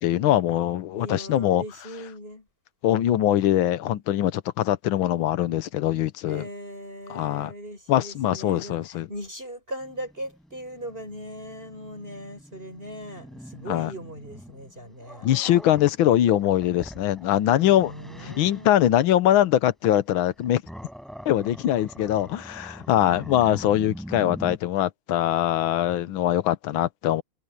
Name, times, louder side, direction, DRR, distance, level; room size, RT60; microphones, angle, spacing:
voice 1, 0.0-1.6 2.8-6.4 7.1-7.5 7.9-9.1 13.7-13.9 15.2-17.9 18.2-20.6 21.2-27.2, left 12 dB, 70° left, 1.6 m, -22 dB
voice 2, 0.9-2.5 6.2-15.3 17.6-18.9 22.9-23.3, equal, 25° right, 6.5 m, -39 dB
Growling, 9.8-15.9 16.4-18.7 20.1-24.6, equal, ahead, 7.8 m, -43 dB
omnidirectional pair, 2.4 m